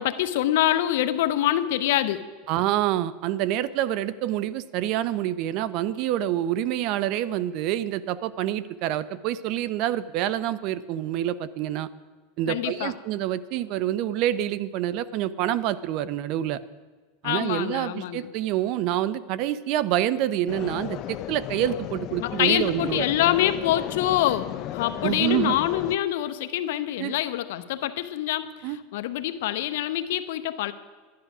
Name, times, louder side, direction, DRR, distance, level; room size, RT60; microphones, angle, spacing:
voice 1, 0.0-2.3 12.5-12.9 17.2-18.3 22.2-30.7, left 13 dB, 75° left, 10 dB, 0.8 m, -25 dB
voice 2, 2.5-11.9 12.4-16.6 17.2-23.0 25.0-25.6 27.0-27.1 28.6-28.8, right 12 dB, 55° right, 17 dB, 0.6 m, -27 dB
sound 1, 20.5-26.0, left 13 dB, 45° left, 0.5 m, -35 dB
11.5 x 10.5 x 6.0 m, 1.4 s
supercardioid pair, 120°, 0 cm